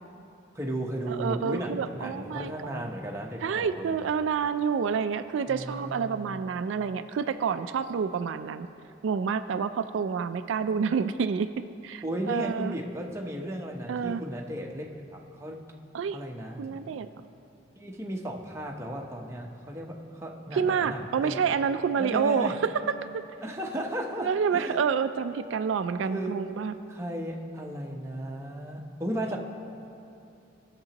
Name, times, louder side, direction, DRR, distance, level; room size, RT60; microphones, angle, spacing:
voice 1, 0.5-4.0 5.5-6.4 12.0-14.9 15.1-15.6 16.1-16.8 17.8-21.4 22.0-22.6 23.4-24.8 26.1-26.4 26.9-29.4, right 1 dB, 15° right, 0 dB, 0.8 m, -35 dB
voice 2, 1.1-2.8 3.4-8.7 9.0-11.5 11.8-12.8 13.9-14.2 15.9-16.2 16.6-17.1 20.5-23.2 24.2-26.7, right 6 dB, 80° right, 10 dB, 0.3 m, -28 dB
19.0 x 6.8 x 2.9 m, 2.7 s
head